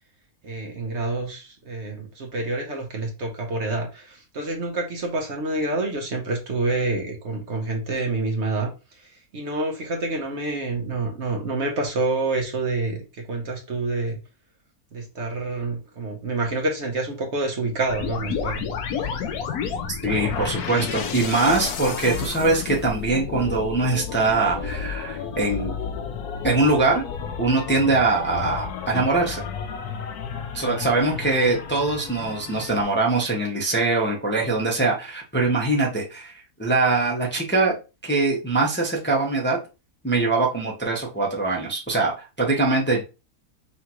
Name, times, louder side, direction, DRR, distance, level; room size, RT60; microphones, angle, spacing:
voice 1, 0.4-8.7 8.9-13.0 13.3-14.2 14.9-18.6 31.1-31.2, right 2 dB, 55° right, 1 dB, 1.1 m, -27 dB
sound 1, 17.9-32.8, left 7 dB, 85° left, 1.2 m, -31 dB
voice 2, 20.0-25.7 26.4-27.0 27.4-29.4 30.5-37.7 38.0-39.6 40.0-43.0, right 3 dB, 10° left, -2 dB, 0.8 m, -22 dB
5.7 x 2.5 x 2.9 m, 0.30 s
omnidirectional pair, 1.6 m